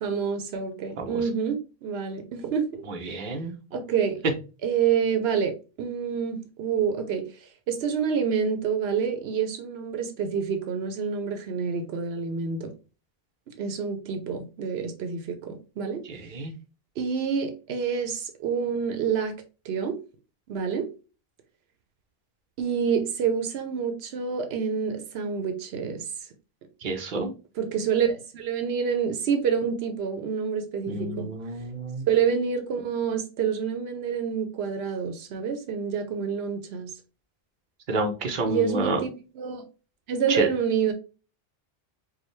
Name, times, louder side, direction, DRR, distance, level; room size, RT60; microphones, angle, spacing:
voice 1, 0.0-3.2 3.7-4.2 4.6-7.2 7.7-12.7 13.6-16.0 17.0-19.3 19.6-20.0 20.5-20.9 22.6-26.0 27.6-31.3 32.1-36.9 38.4-39.6 40.1-40.9, right 6 dB, 85° right, 0.9 m, -27 dB
voice 2, 2.9-3.5 16.0-16.5 26.8-27.3 30.9-32.1 37.9-39.0 40.3-40.5, right 2 dB, 55° right, 0.9 m, -29 dB
4.8 x 2.2 x 3.1 m
omnidirectional pair, 1.0 m